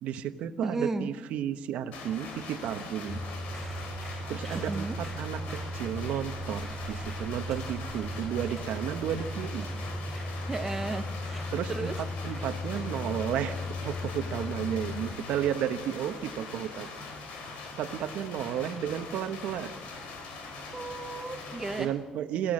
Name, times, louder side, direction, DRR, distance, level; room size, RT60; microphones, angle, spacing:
voice 1, 0.0-3.2 4.3-9.7 11.5-13.6 13.8-16.9 17.5-19.7 21.8-22.5, right 9 dB, 70° right, 9 dB, 1.2 m, -33 dB
voice 2, 0.6-1.1 4.6-5.0 10.5-11.1 11.3-11.4 11.7-11.9 20.7-21.9, right 3 dB, 15° right, 7 dB, 0.8 m, -33 dB
sound 1, 1.9-21.9, left 3 dB, 85° left, 4.3 m, -42 dB
sound 2, 3.1-15.1, left 1 dB, 30° left, 2.7 m, -37 dB
sound 3, 3.5-14.3, right 1 dB, 5° left, 5.4 m, -51 dB
29.0 x 16.0 x 6.5 m, 1.4 s
cardioid pair, 180°, 2 cm